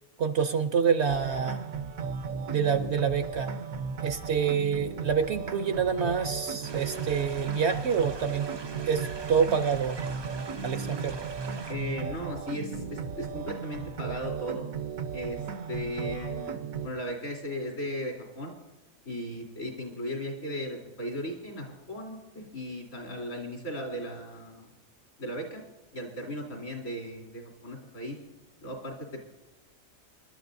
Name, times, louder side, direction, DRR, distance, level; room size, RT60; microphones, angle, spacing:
voice 1, 0.2-1.6 2.5-3.5 4.0-8.5 8.9-10.0 10.6-11.2, right 6 dB, 60° right, 9 dB, 0.9 m, -27 dB
sound 1, 1.1-16.9, right 6 dB, 80° right, 1.3 m, -36 dB
sound 2, 6.6-11.7, right 3 dB, 40° right, 0.3 m, -43 dB
voice 2, 11.7-14.7 15.1-15.4 15.7-18.5 19.1-24.7 25.2-25.6 25.9-28.2 28.6-29.3, equal, 70° left, -2 dB, 3.7 m, -36 dB
25.5 x 12.0 x 2.6 m, 1.0 s
omnidirectional pair, 1.4 m